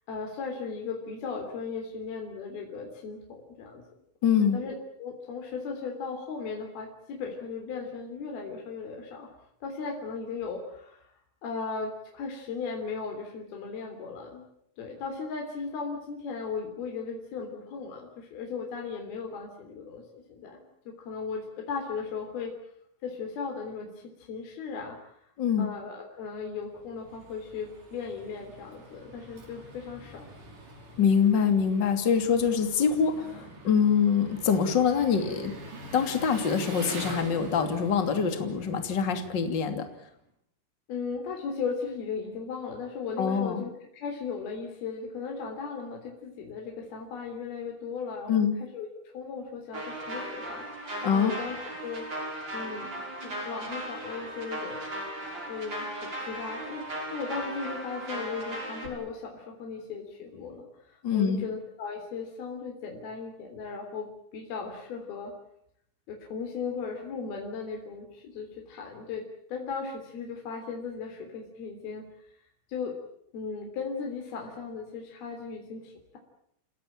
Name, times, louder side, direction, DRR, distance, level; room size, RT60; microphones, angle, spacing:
voice 1, 0.1-3.8 4.4-9.3 9.6-11.0 11.4-14.5 14.8-20.6 20.9-22.5 23.0-23.9 24.2-25.2 25.6-30.3 40.9-43.7 44.0-51.6 51.8-52.1 52.5-52.9 53.2-54.8 55.5-65.3 66.1-72.0 72.7-73.0 73.3-76.2, left 5 dB, 50° left, 1 dB, 4.9 m, -37 dB
voice 2, 4.2-4.6 25.4-25.7 31.0-35.5 35.9-39.9 43.2-43.6 48.3-48.6 51.0-51.3 61.0-61.4, left 7 dB, 30° left, 7 dB, 2.4 m, -24 dB
Engine, 26.5-40.1, right 2 dB, 40° right, 6.5 m, -45 dB
sound 1, 49.7-58.9, right 1 dB, 20° right, 6.6 m, -37 dB
29.0 x 17.5 x 8.9 m, 0.73 s
omnidirectional pair, 5.8 m